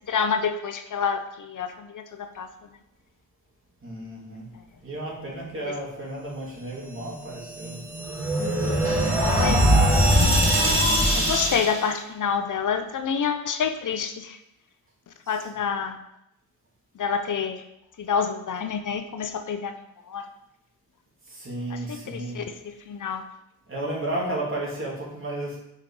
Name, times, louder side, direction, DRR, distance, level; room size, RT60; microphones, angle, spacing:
voice 1, 0.1-2.5 5.6-5.7 9.3-10.0 11.1-14.4 15.3-16.0 17.0-17.6 18.0-19.8 20.1-20.2 21.7-22.5 22.9-23.2, left 6 dB, 60° left, 7 dB, 0.7 m, -28 dB
voice 2, 3.8-4.5 4.8-7.8 15.2-15.4 21.2-22.4 23.7-25.6, right 1 dB, 35° right, -4 dB, 2.8 m, -33 dB
sound 1, 7.4-11.9, equal, 5° right, 3.7 m, -21 dB
8.4 x 5.8 x 4.9 m, 0.84 s
wide cardioid pair, 165°, 36 cm